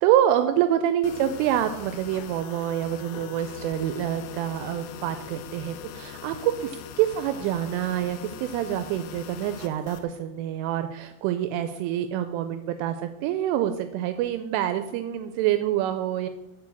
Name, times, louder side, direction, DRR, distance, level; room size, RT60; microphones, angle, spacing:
voice 1, 0.0-16.3, right 11 dB, 85° right, 9 dB, 2.9 m, -26 dB
sound 1, 1.0-10.1, left 10 dB, 90° left, 2.5 m, -42 dB
sound 2, 3.1-9.2, left 8 dB, 75° left, 2.7 m, -47 dB
6.9 x 6.5 x 6.9 m, 0.90 s
omnidirectional pair, 5.8 m